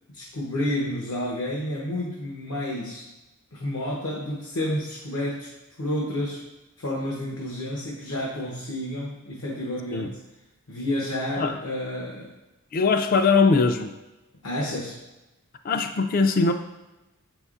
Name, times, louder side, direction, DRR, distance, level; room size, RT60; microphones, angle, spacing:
voice 1, 0.1-3.0 3.5-5.5 5.8-6.5 6.8-10.2 10.7-12.3 14.4-15.0, left 1 dB, 70° left, -2 dB, 0.8 m, -30 dB
voice 2, 12.7-13.9 15.7-16.5, left 4 dB, 40° left, 8 dB, 0.3 m, -21 dB
7.3 x 5.4 x 2.4 m, 1.0 s
head